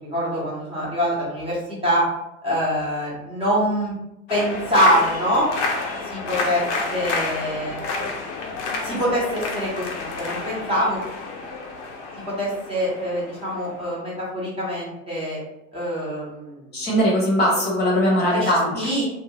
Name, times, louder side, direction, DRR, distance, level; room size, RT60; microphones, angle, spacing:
voice 1, 0.0-2.0 2.4-3.9 4.3-5.5 6.0-6.6 6.9-7.8 8.8-11.0 12.3-15.4 15.7-16.6 18.3-19.0, equal, 15° right, -7 dB, 1.1 m, -24 dB
sound 1, 4.3-14.0, left 3 dB, 55° left, 0.7 m, -30 dB
voice 2, 16.7-18.9, equal, 25° left, -5 dB, 1.0 m, -20 dB
2.8 x 2.4 x 2.9 m, 0.88 s
figure-of-eight pair, 80°, 42 cm